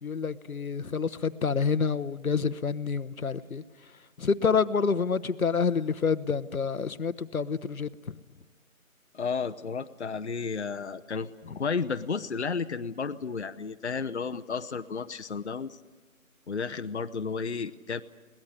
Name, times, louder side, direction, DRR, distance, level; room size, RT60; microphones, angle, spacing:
voice 1, 0.0-3.9 4.2-8.2 11.5-11.6, left 5 dB, 75° left, 1.0 m, -28 dB
voice 2, 9.1-15.8 16.5-18.0, left 5 dB, 50° left, 0.8 m, -32 dB
22.5 x 18.5 x 9.8 m
figure-of-eight pair, 165°, 42 cm